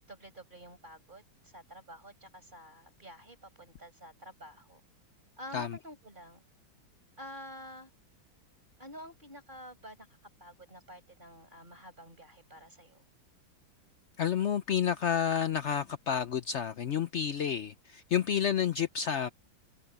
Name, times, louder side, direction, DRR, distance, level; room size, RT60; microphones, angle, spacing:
voice 1, 0.1-4.8 5.4-6.4 7.2-7.9 8.8-10.1 10.4-13.0, equal, 25° right, 5.3 m, -49 dB
voice 2, 14.2-19.3, left 8 dB, 85° left, 0.6 m, -30 dB
omnidirectional pair, 2.2 m